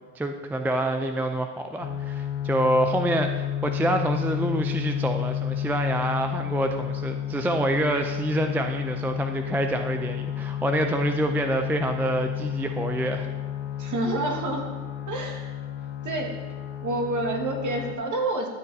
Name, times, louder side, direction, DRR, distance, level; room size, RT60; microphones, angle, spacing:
voice 1, 0.1-13.3, right 1 dB, 5° right, 6 dB, 0.3 m, -27 dB
sound 1, 1.8-17.9, left 10 dB, 65° left, 0.9 m, -31 dB
voice 2, 13.8-14.7 15.1-15.5 16.0-16.3 16.8-18.5, right 2 dB, 40° right, 2 dB, 1.7 m, -28 dB
12.5 x 7.7 x 2.7 m, 1.3 s
hypercardioid pair, 75°, 45 cm